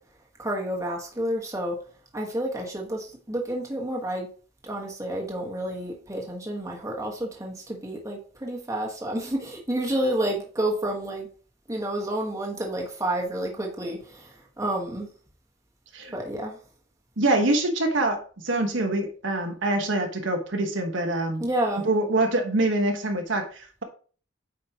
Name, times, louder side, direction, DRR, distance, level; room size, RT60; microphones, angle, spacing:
voice 1, 0.4-1.8 2.1-4.3 4.6-11.3 11.7-15.1 16.1-16.6 21.4-21.9, right 1 dB, 15° right, -1 dB, 1.4 m, -30 dB
voice 2, 17.2-21.4 21.8-23.8, right 2 dB, 65° right, 4 dB, 1.2 m, -25 dB
8.3 x 5.2 x 2.9 m, 0.40 s
head